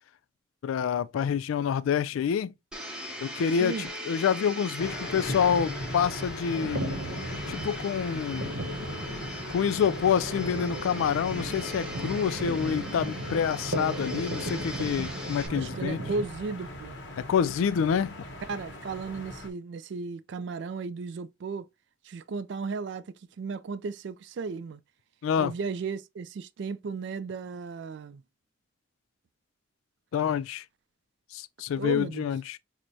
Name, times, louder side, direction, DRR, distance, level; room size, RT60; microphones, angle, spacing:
voice 1, 0.6-2.5 3.2-6.8 7.5-8.5 9.5-16.0 17.2-18.2 25.2-25.5 30.1-30.6 31.3-32.6, left 7 dB, 85° left, 0.3 m, -27 dB
Domestic sounds home sounds, 2.7-15.5, left 1 dB, 5° right, 0.6 m, -40 dB
sound 1, 4.8-19.5, left 1 dB, 55° left, 1.0 m, -40 dB
sound 2, 6.5-16.3, right 1 dB, 80° right, 0.9 m, -36 dB
voice 2, 15.4-17.0 18.5-21.7 22.0-24.8 25.4-28.2 31.7-32.3, right 4 dB, 60° right, 0.3 m, -35 dB
5.9 x 2.1 x 2.5 m
head